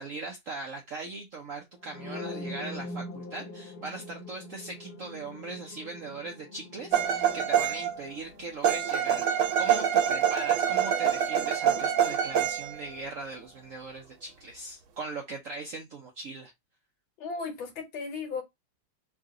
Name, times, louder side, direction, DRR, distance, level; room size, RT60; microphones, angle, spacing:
voice 1, 0.0-16.5, right 3 dB, 75° right, 0.7 m, -40 dB
sound 1, 1.8-9.7, left 2 dB, 55° left, 1.3 m, -43 dB
sound 2, 6.9-8.0 8.6-12.8, right 8 dB, 90° right, 1.5 m, -25 dB
voice 2, 17.2-18.4, left 4 dB, 75° left, 1.9 m, -35 dB
3.8 x 2.5 x 3.5 m
omnidirectional pair, 2.3 m